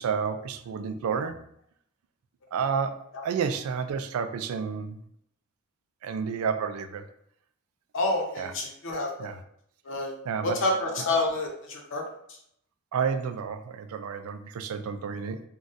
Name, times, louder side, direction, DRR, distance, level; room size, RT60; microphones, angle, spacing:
voice 1, 0.0-1.4 2.5-3.0 3.2-5.0 6.0-7.1 8.4-8.5 9.2-9.4 10.3-10.6 12.9-15.4, right 6 dB, 75° right, 8 dB, 0.3 m, -30 dB
voice 2, 7.9-9.3 9.8-10.1 10.4-12.0, left 2 dB, 65° left, 0 dB, 0.8 m, -28 dB
3.9 x 2.3 x 2.5 m, 0.70 s
head